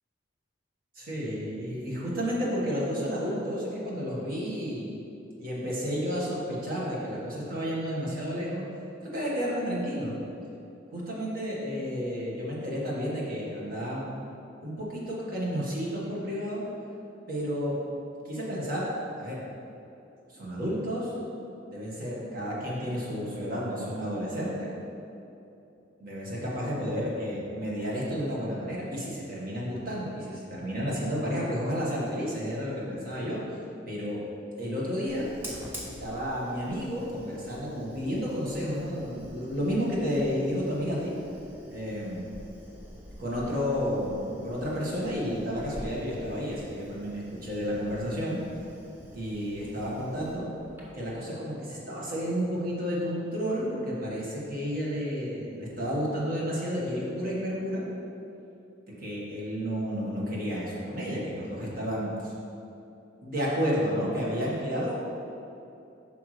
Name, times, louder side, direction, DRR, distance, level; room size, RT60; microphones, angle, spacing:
voice 1, 0.9-4.9 5.4-8.6 9.0-10.1 10.9-14.1 14.6-16.6 17.3-17.8 18.2-18.9 19.2-19.4 20.3-21.1 21.7-24.7 26.0-33.4 33.9-34.2 34.6-35.3 35.8-41.1 41.7-42.3 43.2-48.4 49.1-50.4 50.9-57.8 59.0-62.3 63.2-65.0, equal, 50° right, -5 dB, 1.6 m, -31 dB
Fire, 35.1-51.2, equal, 10° right, 1.0 m, -47 dB
8.1 x 5.8 x 3.3 m, 2.8 s
head